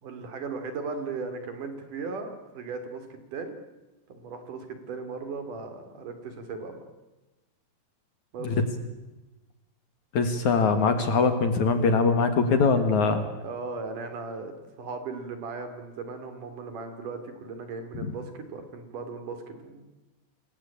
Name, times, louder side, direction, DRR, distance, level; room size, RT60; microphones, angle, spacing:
voice 1, 0.0-3.6 4.1-6.8 8.3-8.6 13.4-19.9, right 4 dB, 50° right, 8 dB, 4.2 m, -37 dB
voice 2, 10.1-13.3, left 4 dB, 55° left, 8 dB, 2.5 m, -22 dB
28.5 x 21.0 x 8.7 m, 1.1 s
omnidirectional pair, 5.1 m